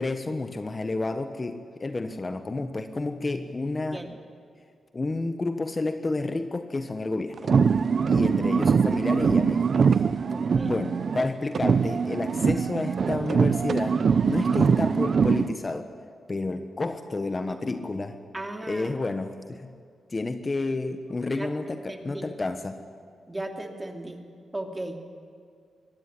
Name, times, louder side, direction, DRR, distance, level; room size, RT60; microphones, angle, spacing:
voice 1, 0.0-4.0 4.9-7.4 8.1-9.6 9.9-10.0 10.6-14.0 14.2-15.9 16.3-18.2 18.7-19.7 20.1-22.8, left 2 dB, 30° left, 8 dB, 1.3 m, -30 dB
sound 1, 7.4-11.3 11.5-15.5, right 6 dB, 55° right, 0.7 m, -23 dB
voice 2, 10.3-10.7 14.3-14.6 17.5-17.6 18.3-18.9 21.4-21.5 21.9-22.3 23.3-24.2 24.5-25.0, right 1 dB, 20° right, 4 dB, 2.6 m, -36 dB
23.5 x 17.0 x 9.6 m, 2.3 s
cardioid pair, 95°, 0 cm